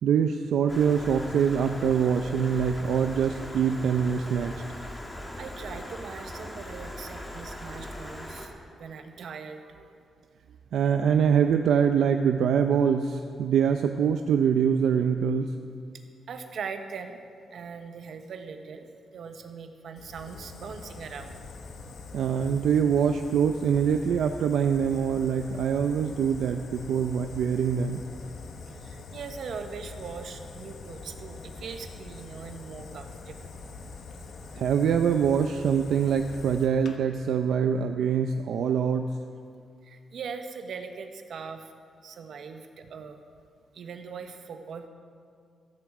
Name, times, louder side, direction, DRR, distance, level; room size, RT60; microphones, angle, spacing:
voice 1, 0.0-4.6 10.7-15.5 22.1-28.1 34.5-39.1, right 7 dB, 80° right, 6 dB, 0.5 m, -24 dB
Stream, 0.7-8.5, left 1 dB, 15° left, 1.6 m, -40 dB
voice 2, 5.4-8.5 8.8-9.6 16.3-17.2 17.5-21.3 28.7-33.4 39.8-41.7 42.0-43.2 43.7-44.9, right 5 dB, 60° right, 6 dB, 1.1 m, -40 dB
Fire, 20.0-37.0, left 4 dB, 60° left, 1.1 m, -43 dB
15.0 x 14.0 x 4.9 m, 2.3 s
wide cardioid pair, 160°, 0 cm